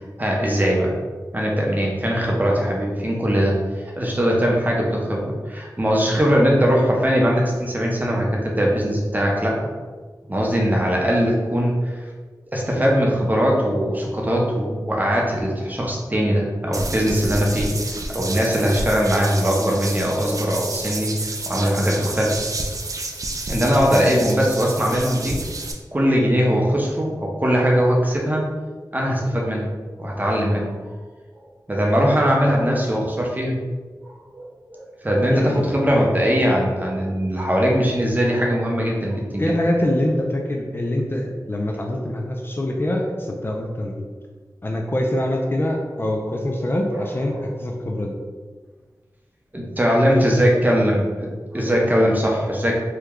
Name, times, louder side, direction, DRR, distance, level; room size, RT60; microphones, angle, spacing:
voice 1, 0.2-1.0 1.3-3.6 4.0-9.7 10.3-12.0 12.5-17.7 18.1-22.4 23.5-25.4 25.9-28.5 28.9-29.6 30.0-30.7 31.7-33.6 34.0-39.5 49.5-52.8, equal, 25° right, -2 dB, 0.7 m, -20 dB
sound 1, 16.7-25.7, right 2 dB, 55° right, 0.4 m, -30 dB
voice 2, 35.2-35.7 39.4-44.1 44.6-48.2, left 1 dB, 30° left, 0 dB, 0.4 m, -24 dB
3.0 x 2.2 x 3.6 m, 1.4 s
wide cardioid pair, 60°, 7 cm